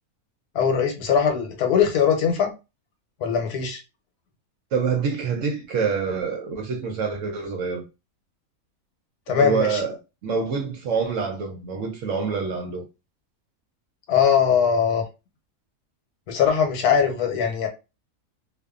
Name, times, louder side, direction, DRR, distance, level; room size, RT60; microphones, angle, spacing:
voice 1, 0.5-2.5 3.2-3.8 9.3-9.8 14.1-15.0 16.3-17.7, left 7 dB, 80° left, 1.2 m, -21 dB
voice 2, 4.7-7.8 9.3-10.0 10.2-12.8, right 5 dB, 65° right, 0.8 m, -26 dB
2.6 x 2.3 x 2.3 m
omnidirectional pair, 1.6 m